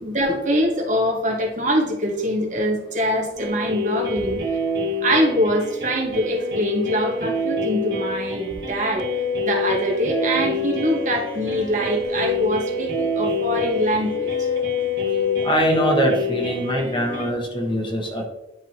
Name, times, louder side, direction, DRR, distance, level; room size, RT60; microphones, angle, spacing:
voice 1, 0.0-4.4 5.0-9.0 9.4-14.3, equal, 40° right, 0 dB, 1.5 m, -23 dB
sound 1, 3.4-17.3, equal, 60° right, 1.5 m, -27 dB
sound 2, 9.0-16.2, left 8 dB, 85° left, 0.4 m, -28 dB
voice 2, 15.4-18.2, equal, 25° left, 0 dB, 1.2 m, -23 dB
11.0 x 3.7 x 2.9 m, 0.95 s
head